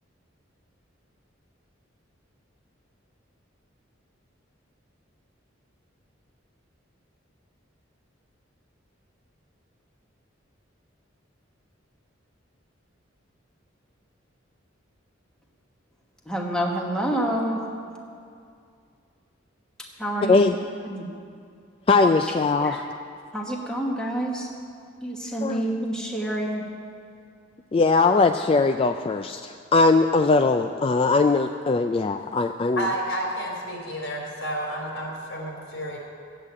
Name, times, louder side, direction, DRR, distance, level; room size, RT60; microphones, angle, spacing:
voice 1, 16.3-17.6 20.0-20.4 20.8-21.1 22.6-22.8 23.3-24.5 25.0-26.6, right 1 dB, 5° left, -1 dB, 1.3 m, -28 dB
voice 2, 21.9-22.8 25.4-25.6 27.7-32.8, left 3 dB, 30° left, 6 dB, 0.3 m, -20 dB
voice 3, 32.8-36.0, right 1 dB, 80° left, -1 dB, 3.7 m, -30 dB
13.0 x 8.2 x 8.7 m, 2.3 s
head